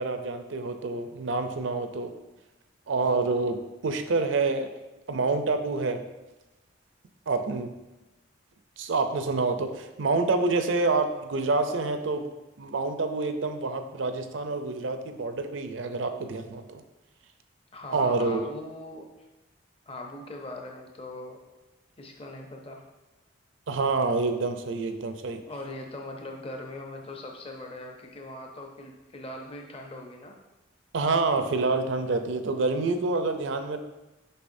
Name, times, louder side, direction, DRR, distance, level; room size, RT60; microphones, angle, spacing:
voice 1, 0.0-2.1 2.9-4.7 5.1-6.0 7.3-7.8 8.8-12.3 12.6-16.8 17.9-18.5 23.7-25.4 30.9-33.8, right 3 dB, 75° right, 7 dB, 0.5 m, -27 dB
voice 2, 17.7-19.3 19.9-21.4 22.0-22.9 25.5-30.3, left 1 dB, 30° left, 1 dB, 0.7 m, -40 dB
6.7 x 5.7 x 2.6 m, 1.0 s
head